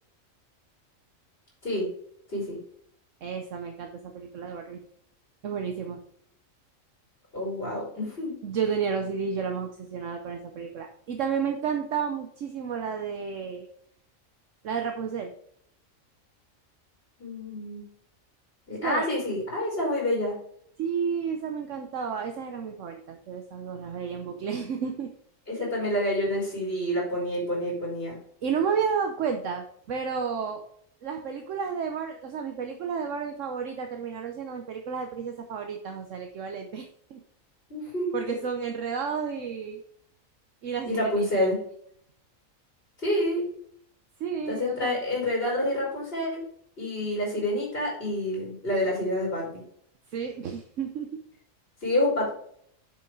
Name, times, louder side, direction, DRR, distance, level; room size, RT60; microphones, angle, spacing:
voice 1, 3.2-4.8 5.4-6.0 8.4-13.7 14.6-15.3 18.8-19.0 20.8-25.1 28.4-30.6 31.0-37.2 38.1-39.8 40.6-41.5 44.2-44.9 50.1-51.1, right 6 dB, 70° right, 4 dB, 1.1 m, -31 dB
voice 2, 7.3-8.4 17.2-17.8 18.7-20.4 25.5-28.2 37.7-38.4 40.9-41.6 43.0-43.5 44.5-46.4 46.8-49.6 51.8-52.3, left 1 dB, 45° left, -5 dB, 4.0 m, -28 dB
7.1 x 6.3 x 4.7 m, 0.66 s
omnidirectional pair, 1.4 m